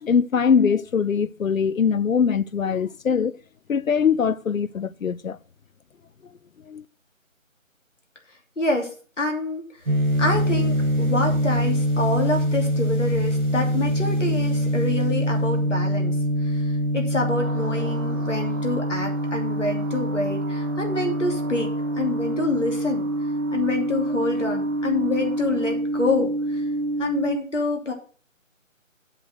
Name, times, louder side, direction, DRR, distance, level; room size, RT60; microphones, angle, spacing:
voice 1, 0.0-3.3 3.7-5.4 6.7-6.8, left 6 dB, 80° left, 0.6 m, -22 dB
voice 2, 8.6-9.6 10.2-16.2 16.4-16.7 16.9-21.7 22.0-23.1 23.5-26.6 27.0-27.9, left 2 dB, 65° left, 2.9 m, -27 dB
sound 1, 9.7-15.7, left 2 dB, 35° left, 4.0 m, -45 dB
sound 2, 9.9-27.4, equal, 90° right, 1.1 m, -25 dB
sound 3, 17.3-25.7, right 2 dB, 15° right, 3.1 m, -42 dB
7.6 x 6.5 x 7.6 m
figure-of-eight pair, 155°, 40 cm